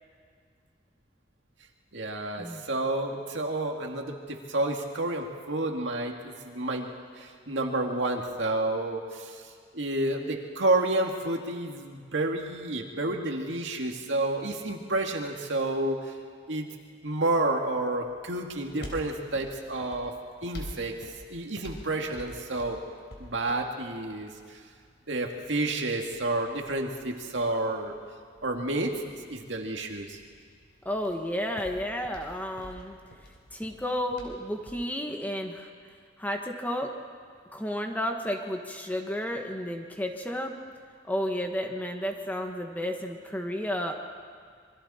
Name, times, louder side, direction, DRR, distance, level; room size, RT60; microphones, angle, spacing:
voice 1, 1.9-9.5 9.7-16.1 16.5-16.7 17.0-20.1 20.4-21.0 21.3-22.8 23.2-24.6 25.1-27.9 28.4-29.0 29.3-30.2, right 2 dB, 70° right, 2 dB, 2.1 m, -30 dB
sound 1, 17.9-34.9, equal, 65° left, 4.0 m, -49 dB
voice 2, 30.8-33.0 33.5-35.7 36.2-36.9 37.5-40.5 41.1-43.9, equal, 10° left, 3 dB, 1.3 m, -32 dB
26.5 x 23.0 x 4.3 m, 2.1 s
head